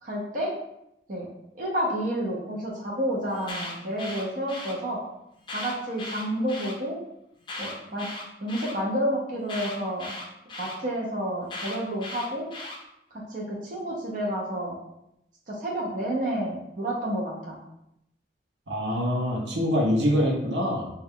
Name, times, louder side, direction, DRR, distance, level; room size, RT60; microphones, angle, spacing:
voice 1, 0.0-0.5 1.1-1.3 1.5-5.0 5.5-7.0 7.6-8.1 8.4-10.1 10.6-12.5 13.1-14.8 15.5-17.6, equal, 50° right, -4 dB, 0.7 m, -30 dB
Alarm, 3.3-4.7 5.4-6.7 7.4-8.7 9.5-10.8 11.5-12.8, left 2 dB, 30° left, 0.5 m, -37 dB
voice 2, 18.7-20.9, equal, 80° right, -1 dB, 0.8 m, -25 dB
3.1 x 2.3 x 3.6 m, 0.82 s
head